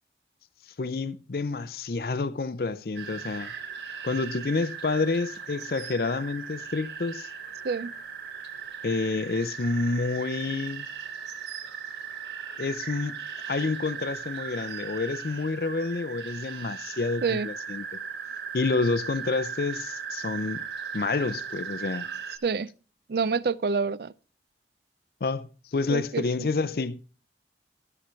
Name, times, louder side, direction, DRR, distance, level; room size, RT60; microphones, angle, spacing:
voice 1, 0.8-3.5 4.0-7.3 8.8-10.9 12.6-13.2 13.5-17.9 18.5-20.7 20.9-22.1 25.2-27.0, left 3 dB, 55° left, 0.5 m, -29 dB
sound 1, 3.0-22.4, right 7 dB, 75° right, 1.3 m, -38 dB
voice 2, 23.1-24.1 25.9-26.2, right 5 dB, 60° right, 0.4 m, -27 dB
13.5 x 5.9 x 5.2 m
head